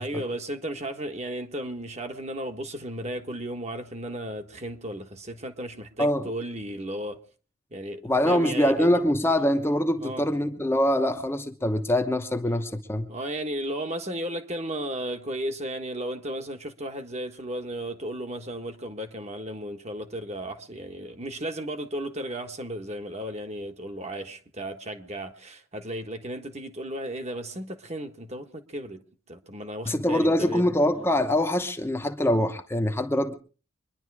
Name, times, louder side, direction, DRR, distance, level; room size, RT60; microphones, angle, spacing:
voice 1, 0.0-7.2 7.7-8.9 10.0-10.3 13.1-30.6, right 1 dB, 30° right, 1.4 m, -34 dB
voice 2, 8.0-13.1 29.9-33.3, left 1 dB, 10° left, 1.0 m, -24 dB
24.5 x 11.0 x 4.8 m
head